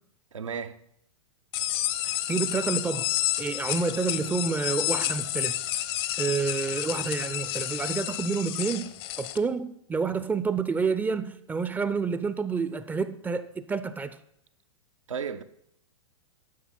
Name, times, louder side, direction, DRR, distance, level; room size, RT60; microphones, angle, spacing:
voice 1, 0.3-0.8 15.1-15.4, right 6 dB, 85° right, 0.8 m, -34 dB
sound 1, 1.5-9.4, left 14 dB, 55° left, 0.8 m, -30 dB
voice 2, 2.0-3.1 3.4-5.6 6.2-8.9 9.2-14.2, right 5 dB, 10° right, 0.5 m, -29 dB
11.0 x 5.8 x 5.9 m
hypercardioid pair, 115°, 16 cm